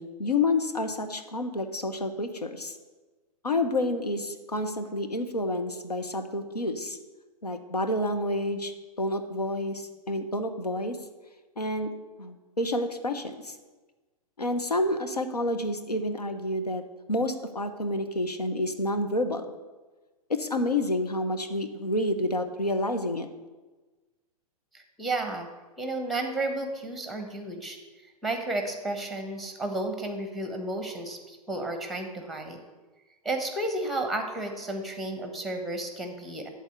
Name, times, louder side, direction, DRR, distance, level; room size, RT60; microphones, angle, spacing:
voice 1, 0.0-2.8 3.4-7.0 7.4-8.7 9.0-11.0 11.6-11.9 12.2-13.6 14.4-16.8 17.1-19.5 20.3-23.3, left 1 dB, 85° left, 6 dB, 1.1 m, -29 dB
voice 2, 24.7-25.5 25.8-27.8 28.2-32.6 33.2-36.5, right 2 dB, ahead, 5 dB, 1.3 m, -32 dB
11.5 x 4.1 x 7.9 m, 1.2 s
figure-of-eight pair, 105°, 20 cm